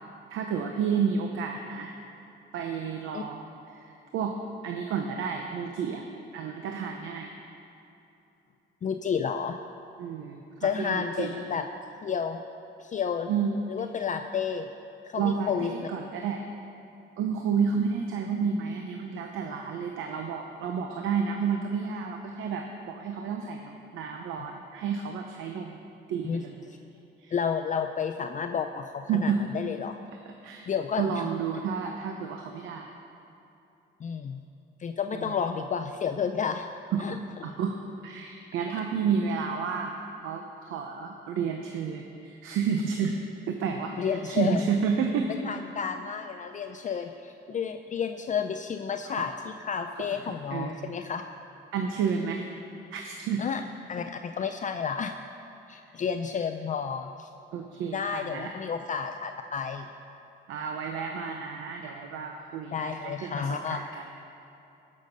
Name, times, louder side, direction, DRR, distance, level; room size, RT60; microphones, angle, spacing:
voice 1, 0.3-2.0 2.5-4.4 4.6-6.1 6.3-7.3 10.0-11.4 13.3-13.6 15.2-16.4 17.2-25.8 26.1-26.6 27.2-27.3 29.1-29.4 30.3-32.9 35.1-35.4 36.9-37.8 38.0-39.9 40.2-43.2 43.5-45.3 46.6-46.9 49.0-49.3 50.0-51.0 51.7-52.5 52.9-53.4 57.5-58.5 60.5-64.1, right 6 dB, 85° right, 3 dB, 0.8 m, -31 dB
voice 2, 8.8-9.6 10.6-11.6 12.0-12.4 12.8-13.3 13.7-14.7 15.0-15.9 26.2-26.4 27.3-30.0 30.7-31.3 34.0-34.4 34.8-36.7 37.0-37.2 44.0-44.6 45.4-51.2 53.4-53.6 53.9-55.1 55.7-57.3 57.9-59.9 62.7-63.8, left 6 dB, 40° left, 7 dB, 0.5 m, -31 dB
16.5 x 6.6 x 5.4 m, 2.9 s
cardioid pair, 90°, 20 cm